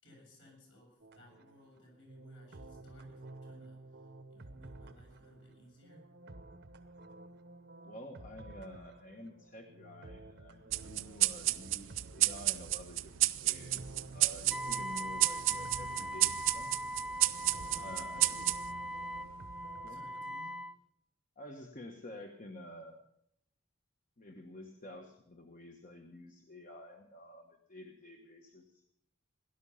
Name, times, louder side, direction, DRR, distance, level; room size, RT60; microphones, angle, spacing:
voice 1, 0.0-6.0 17.6-18.1 19.8-20.5, left 1 dB, 70° left, -1 dB, 7.1 m, -60 dB
sound 1, 1.0-20.6, right 2 dB, 60° right, 1.0 m, -52 dB
voice 2, 7.8-13.1 13.4-16.7 17.7-18.5 19.8-20.0 21.4-23.0 24.2-28.9, left 1 dB, 40° left, 3 dB, 1.2 m, -50 dB
sound 2, 10.7-19.6, right 17 dB, 80° right, 0.5 m, -32 dB
Wind instrument woodwind instrument, 14.5-20.7, equal, ahead, 0.5 m, -41 dB
17.5 x 11.0 x 5.6 m, 0.75 s
head